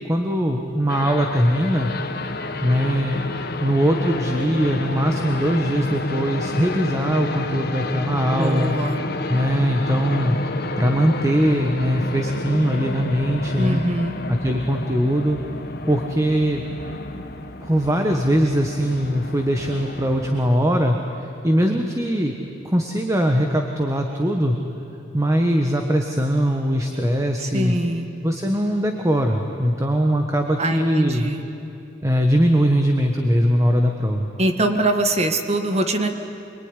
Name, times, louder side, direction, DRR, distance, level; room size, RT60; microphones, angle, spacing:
voice 1, 0.1-1.9 2.6-3.2 3.6-8.7 9.3-10.4 10.8-13.8 14.3-15.4 15.9-16.6 17.6-21.0 21.4-22.3 22.6-24.6 25.1-27.8 28.2-31.3 32.0-34.3, equal, 15° right, 3 dB, 1.4 m, -21 dB
sound 1, 0.9-20.6, left 2 dB, 55° left, 1.7 m, -30 dB
voice 2, 8.3-9.0 13.5-14.2 27.4-28.1 30.6-31.4 34.4-36.1, right 1 dB, 35° right, 5 dB, 1.8 m, -23 dB
25.5 x 22.5 x 9.9 m, 2.8 s
head